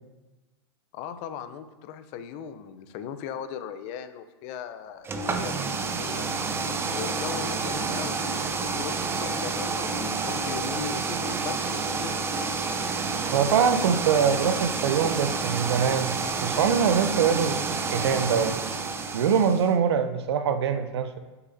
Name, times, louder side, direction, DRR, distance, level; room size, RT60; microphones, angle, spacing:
voice 1, 0.9-6.3 6.9-12.2, left 8 dB, 45° left, 10 dB, 0.8 m, -38 dB
sound 1, 5.0-19.7, right 4 dB, 15° right, 0.8 m, -29 dB
voice 2, 13.3-16.2 16.4-18.6 19.1-21.2, right 7 dB, 70° right, 9 dB, 0.8 m, -23 dB
12.5 x 6.9 x 2.8 m, 1.2 s
hypercardioid pair, 115°, 14 cm